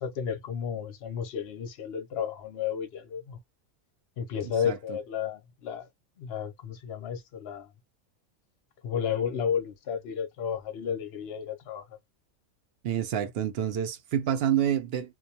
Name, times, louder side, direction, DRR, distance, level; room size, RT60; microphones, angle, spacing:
voice 1, 0.0-3.4 4.2-5.9 6.2-7.7 8.8-11.9, left 8 dB, 60° left, 0.7 m, -32 dB
voice 2, 4.4-5.0 12.8-15.2, right 10 dB, 65° right, 0.6 m, -28 dB
2.3 x 2.2 x 2.6 m
omnidirectional pair, 1.4 m